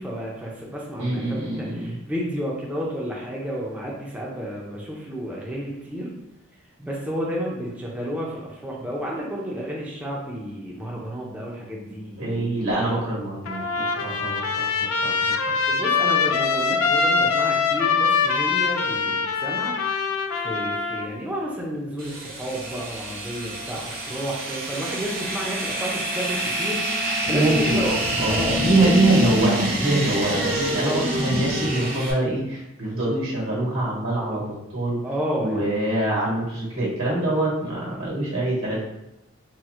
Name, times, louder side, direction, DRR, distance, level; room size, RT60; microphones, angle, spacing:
voice 1, 0.0-6.1 6.8-12.5 15.6-19.8 20.3-26.8 27.3-27.9 28.3-29.0 30.5-31.0 35.0-35.8, equal, 5° right, -4 dB, 0.4 m, -31 dB
voice 2, 1.0-1.9 12.2-15.6 27.3-35.0 35.4-38.8, right 2 dB, 85° right, -5 dB, 1.3 m, -24 dB
Trumpet, 13.4-21.1, left 5 dB, 80° left, 0.3 m, -23 dB
sound 1, 22.0-32.1, equal, 45° right, 0.6 m, -26 dB
4.1 x 2.1 x 2.4 m, 0.89 s
head